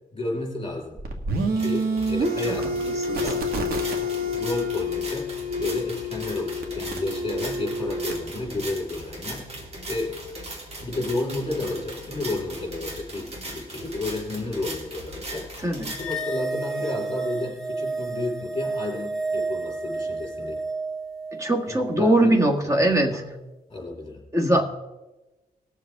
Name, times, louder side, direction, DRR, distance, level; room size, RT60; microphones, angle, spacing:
voice 1, 0.1-1.0 1.6-3.6 4.0-10.2 10.8-15.5 15.9-20.6 21.7-23.3 23.7-24.2 24.5-24.6, left 2 dB, 30° left, -2 dB, 4.6 m, -32 dB
sound 1, 1.0-8.2, left 1 dB, 75° right, 1.8 m, -28 dB
sound 2, 1.4-16.1, right 1 dB, 40° right, 2.7 m, -39 dB
sound 3, 15.9-22.4, right 3 dB, ahead, 1.7 m, -31 dB
voice 2, 21.4-23.2 24.3-24.6, right 1 dB, 20° right, 4 dB, 1.5 m, -21 dB
20.0 x 7.2 x 3.6 m, 1.1 s
cardioid pair, 125°, 16 cm